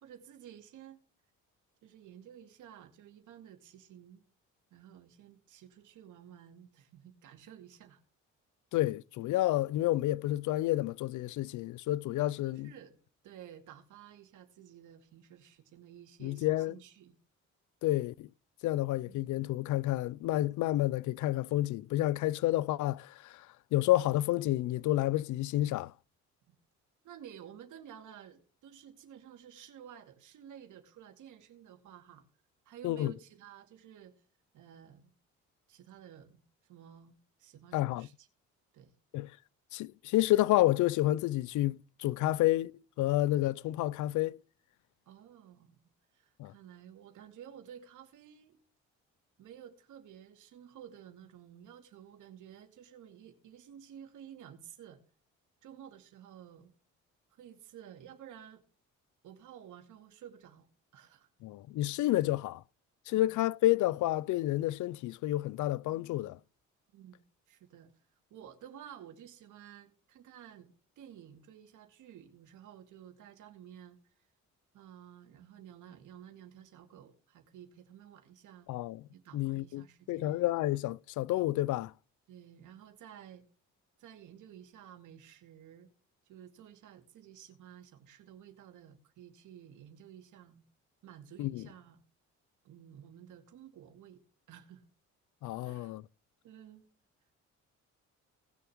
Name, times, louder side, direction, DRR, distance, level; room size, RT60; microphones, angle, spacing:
voice 1, 0.0-1.0 1.8-4.2 4.7-8.0 12.4-13.0 13.2-17.2 19.0-19.3 26.5-26.6 27.0-32.2 32.7-34.1 34.5-35.1 35.7-36.4 36.7-38.3 38.7-38.9 45.1-45.8 46.1-48.6 49.4-55.0 55.6-56.7 57.3-58.6 59.2-60.7 60.9-61.3 63.1-63.3 66.9-67.9 68.3-74.0 74.7-78.7 79.1-80.5 82.3-83.4 84.0-85.9 86.3-90.6 91.0-92.0 92.6-94.2 94.5-94.8 95.6-95.9 96.4-96.9, right 9 dB, 85° right, 2.4 m, -53 dB
voice 2, 8.7-12.7 16.2-16.7 17.8-18.3 18.6-23.5 23.7-25.9 32.8-33.1 37.7-38.1 39.1-39.3 39.7-42.7 43.0-44.4 46.4-46.5 61.4-62.6 63.1-66.4 78.7-79.0 79.3-81.9 91.4-91.6 95.4-96.0, left 15 dB, 75° left, 0.5 m, -30 dB
19.0 x 7.0 x 3.0 m
cardioid pair, 90°, 30 cm